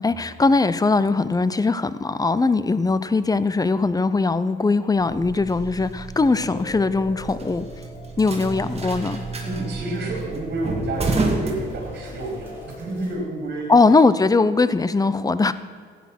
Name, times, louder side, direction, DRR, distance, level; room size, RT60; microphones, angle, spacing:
voice 1, 0.0-7.7 8.2-9.2 13.7-15.5, left 3 dB, 20° left, 15 dB, 0.7 m, -20 dB
sound 1, 5.0-12.3, right 3 dB, 30° right, 2.4 m, -30 dB
sound 2, 6.2-13.1, left 2 dB, 35° left, 2.1 m, -42 dB
sound 3, 6.4-13.2, left 1 dB, 10° right, 4.0 m, -49 dB
voice 2, 9.4-13.7 15.0-15.1, right 2 dB, 55° right, -1 dB, 4.3 m, -30 dB
14.5 x 9.5 x 6.1 m, 2.1 s
cardioid pair, 90°, 20 cm